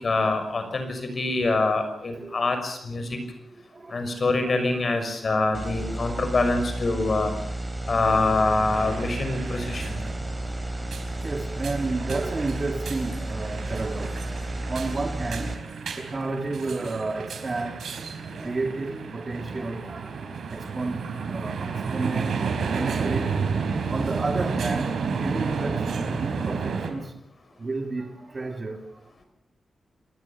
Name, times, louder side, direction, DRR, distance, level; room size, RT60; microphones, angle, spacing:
voice 1, 0.0-3.2 3.9-7.3 7.9-10.0, left 3 dB, 45° left, 6.0 m, -25 dB
voice 2, 2.0-2.5 3.5-5.1 5.7-5.8 6.1-6.2 8.8-9.1 9.9-10.0 10.6-10.7 11.2-15.5 15.9-17.8 18.2-23.4 23.9-27.1 27.6-29.2, right 3 dB, 35° right, 2.8 m, -32 dB
sound 1, 5.5-15.6, right 1 dB, 10° right, 3.1 m, -32 dB
sound 2, 8.7-26.9, right 5 dB, 80° right, 4.3 m, -31 dB
27.5 x 19.5 x 7.3 m
wide cardioid pair, 120°, 0 cm